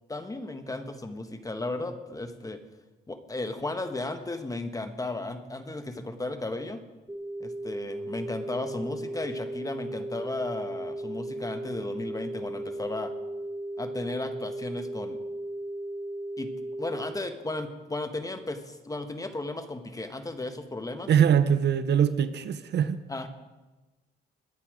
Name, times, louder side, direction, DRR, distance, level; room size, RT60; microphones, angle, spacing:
voice 1, 0.1-2.6 3.1-6.8 7.4-13.1 13.8-15.2 16.4-16.5 16.8-21.1 23.1-23.3, left 2 dB, 15° left, 8 dB, 1.4 m, -35 dB
sound 1, 7.1-17.1, right 1 dB, 15° right, 5.0 m, -36 dB
voice 2, 21.1-23.0, right 8 dB, 60° right, 12 dB, 0.8 m, -22 dB
21.5 x 8.3 x 5.0 m, 1.1 s
cardioid pair, 90°, 20 cm